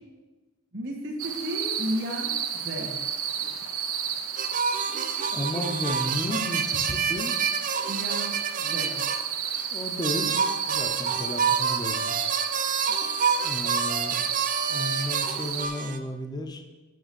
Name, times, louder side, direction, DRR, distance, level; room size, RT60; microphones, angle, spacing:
voice 1, 0.7-3.1 7.9-9.1 13.0-13.1, equal, 60° right, -1 dB, 1.6 m, -34 dB
sound 1, 1.2-15.7, right 8 dB, 90° right, 0.8 m, -31 dB
sound 2, 4.4-9.2 9.6-9.7 10.0-16.0, right 6 dB, 40° right, 0.5 m, -28 dB
voice 2, 5.3-7.4 9.7-10.4 10.7-12.2 13.4-14.2 14.7-16.6, left 1 dB, 20° left, 5 dB, 0.7 m, -33 dB
6.4 x 6.0 x 7.0 m, 1.2 s
head